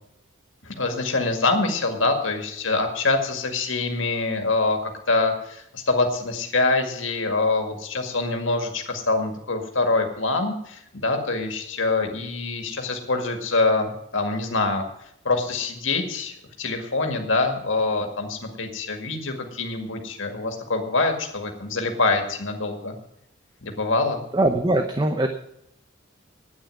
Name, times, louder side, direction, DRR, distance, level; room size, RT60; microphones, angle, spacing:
voice 1, 0.6-14.8 15.2-22.9 23.6-24.2, left 3 dB, 75° left, 4 dB, 2.1 m, -25 dB
voice 2, 24.3-25.3, right 1 dB, 20° right, 6 dB, 0.8 m, -21 dB
9.7 x 9.1 x 9.2 m, 0.75 s
head